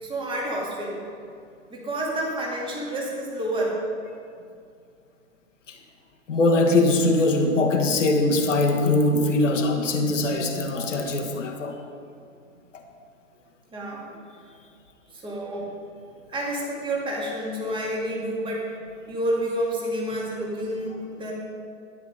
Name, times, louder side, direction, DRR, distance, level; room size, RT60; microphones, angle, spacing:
voice 1, 0.0-1.0 1.7-3.8 13.7-14.1 15.1-15.7 16.3-18.7 19.1-21.3, right 1 dB, 10° right, -3 dB, 2.4 m, -29 dB
voice 2, 6.3-11.8, left 2 dB, 60° left, 2 dB, 1.6 m, -21 dB
12.5 x 10.0 x 5.3 m, 2.3 s
figure-of-eight pair, 110°, 41 cm